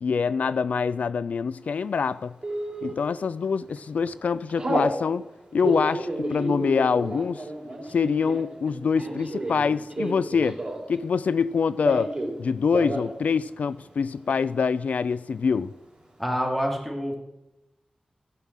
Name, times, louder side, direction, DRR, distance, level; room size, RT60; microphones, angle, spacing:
voice 1, 0.0-2.3 2.8-5.3 5.5-7.4 7.9-10.6 10.9-12.1 12.4-15.7, left 5 dB, 85° left, 0.3 m, -25 dB
Telephone, 2.4-2.9 3.5-3.8 4.1-4.9 5.5-11.0 11.3-12.4 12.6-13.1 13.4-13.5 13.8-14.3, right 1 dB, 35° right, 3.4 m, -31 dB
voice 2, 16.2-17.2, equal, 5° left, 2.5 m, -27 dB
15.5 x 5.7 x 7.4 m
wide cardioid pair, 100°, 2 cm